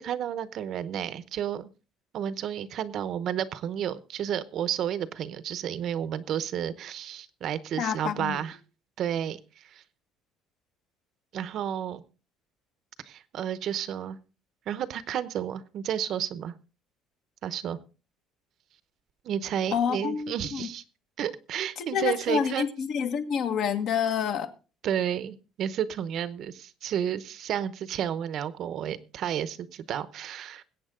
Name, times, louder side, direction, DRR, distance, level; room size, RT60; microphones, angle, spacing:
voice 1, 0.0-1.7 2.1-8.6 9.0-9.8 11.3-12.0 13.0-14.2 14.7-16.5 17.4-17.8 19.2-20.8 21.2-22.7 24.8-30.6, right 9 dB, 45° right, 0.9 m, -31 dB
voice 2, 7.8-8.4 19.7-20.7 21.8-24.5, left 7 dB, 50° left, 1.6 m, -28 dB
21.5 x 8.6 x 3.7 m
cardioid pair, 160°, 0 cm